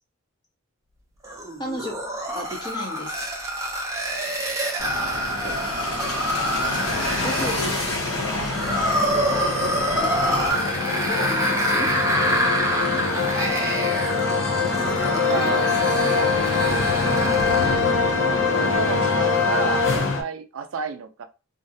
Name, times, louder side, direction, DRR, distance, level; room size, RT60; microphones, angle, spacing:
sound 1, 1.2-17.9, right 1 dB, 15° right, 0.5 m, -27 dB
voice 1, 1.6-2.0 2.3-3.1 5.4-5.6 7.2-7.8 8.1-9.6 9.9-10.4 11.0-11.9 15.0-15.5, left 1 dB, 20° left, 0 dB, 0.7 m, -34 dB
sound 2, 4.8-10.5, left 2 dB, 90° left, 0.8 m, -30 dB
sound 3, 5.5-20.2, left 4 dB, 60° left, 0.5 m, -24 dB
voice 2, 15.3-16.6 18.1-21.2, right 5 dB, 75° right, 7 dB, 0.4 m, -31 dB
2.5 x 2.0 x 2.6 m, 0.31 s
head